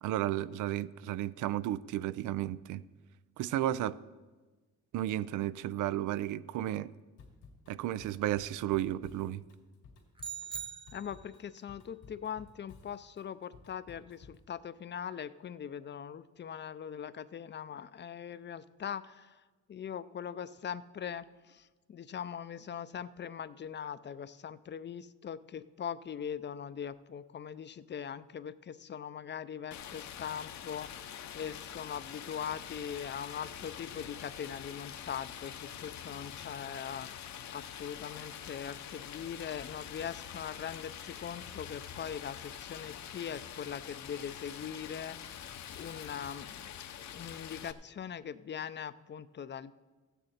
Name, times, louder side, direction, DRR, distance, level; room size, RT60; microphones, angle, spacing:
voice 1, 0.0-2.8 3.4-4.0 4.9-6.9 7.7-9.4, right 13 dB, 85° right, 17 dB, 0.5 m, -33 dB
Drum kit / Drum, 7.2-14.5, left 4 dB, 90° left, 2.2 m, -56 dB
sound 1, 10.2-11.5, right 7 dB, 15° right, 0.9 m, -42 dB
voice 2, 10.9-19.4 19.7-45.5 45.8-46.7 47.1-49.7, left 8 dB, 35° left, 15 dB, 0.5 m, -41 dB
Stream, 29.7-47.7, left 9 dB, 65° left, 0.8 m, -45 dB
14.5 x 9.2 x 4.3 m, 1.3 s
cardioid pair, 90°, 30 cm